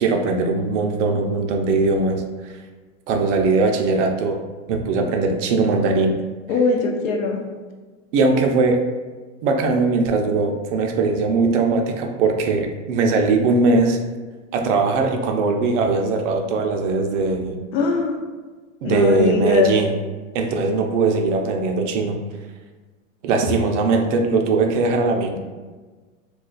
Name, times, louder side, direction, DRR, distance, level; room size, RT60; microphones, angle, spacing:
voice 1, 0.0-2.6 3.1-4.4 4.7-6.2 8.1-8.8 9.4-14.0 14.5-17.6 18.8-19.9 20.3-22.2 23.2-25.4, right 3 dB, 60° right, 4 dB, 0.6 m, -20 dB
voice 2, 6.5-7.4 17.7-18.2 18.8-19.7, left 4 dB, 70° left, 2 dB, 0.7 m, -21 dB
2.4 x 2.3 x 3.8 m, 1.3 s
hypercardioid pair, 135°, 40 cm